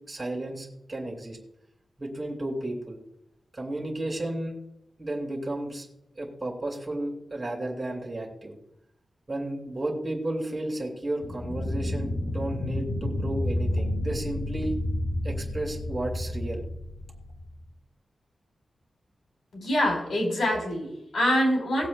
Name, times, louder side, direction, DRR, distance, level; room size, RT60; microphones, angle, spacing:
voice 1, 0.1-1.4 2.0-3.0 3.5-4.5 5.0-5.9 6.2-8.5 9.3-14.8 15.2-16.6, right 1 dB, 20° right, -1 dB, 2.8 m, -33 dB
sound 1, 11.2-17.7, left 1 dB, 40° left, 0.8 m, -30 dB
voice 2, 19.5-21.9, equal, 80° left, -1 dB, 4.1 m, -25 dB
19.5 x 7.6 x 2.2 m, 0.82 s
wide cardioid pair, 165°, 0 cm